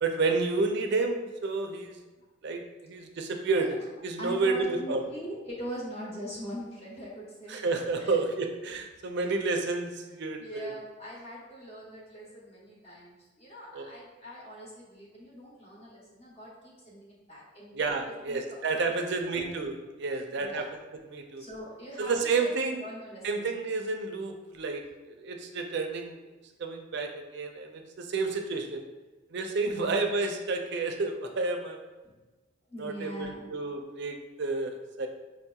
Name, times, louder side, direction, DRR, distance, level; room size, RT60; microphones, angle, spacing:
voice 1, 0.0-2.0 2.4-3.7 4.0-5.0 7.5-10.7 13.7-13.8 17.7-20.6 21.1-21.4 22.0-22.8 23.2-26.2 26.6-28.8 29.3-31.8 32.8-35.1, right 3 dB, 60° right, 4 dB, 0.4 m, -30 dB
voice 2, 4.2-7.6 7.9-8.2 10.4-17.7 18.3-19.6 20.4-20.6 21.4-22.5 22.8-23.6 29.7-30.0 32.0-32.2 32.7-33.5, equal, 30° left, -5 dB, 0.8 m, -42 dB
4.9 x 2.8 x 2.3 m, 1.2 s
head